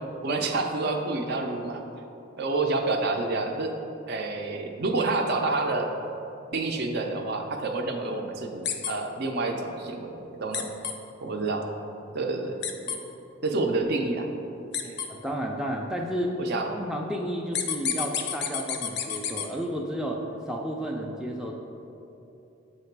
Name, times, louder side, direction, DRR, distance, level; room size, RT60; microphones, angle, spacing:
voice 1, 0.2-1.8 2.4-3.7 4.1-5.9 6.5-10.1 10.4-10.7 11.2-11.7 12.1-13.0 13.4-14.3 14.8-15.0 16.4-16.7, right 3 dB, 55° right, 3 dB, 0.5 m, -28 dB
sound 1, 8.6-8.9 10.5-10.9 12.6-13.0 14.7-15.1 17.5-19.5, left 8 dB, 55° left, 0.5 m, -29 dB
voice 2, 15.1-16.4 16.7-21.5, equal, 5° right, -1 dB, 0.3 m, -32 dB
8.0 x 2.9 x 4.6 m, 2.9 s
head